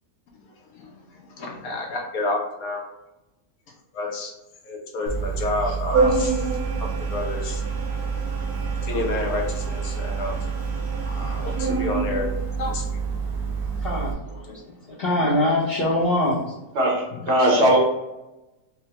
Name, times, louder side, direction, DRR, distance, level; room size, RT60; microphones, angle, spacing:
voice 1, 0.5-2.8 3.9-4.3 4.6-6.5 6.8-7.6 8.8-10.7 11.0-12.8 17.1-17.3, left 2 dB, 70° left, 0 dB, 1.0 m, -30 dB
Organ, 5.1-14.1, right 4 dB, 65° right, 1.1 m, -26 dB
voice 2, 13.8-16.6, left 1 dB, 45° left, -9 dB, 0.9 m, -24 dB
voice 3, 16.8-17.8, right 1 dB, 90° right, -2 dB, 1.7 m, -19 dB
4.6 x 2.1 x 2.9 m, 0.99 s
omnidirectional pair, 1.7 m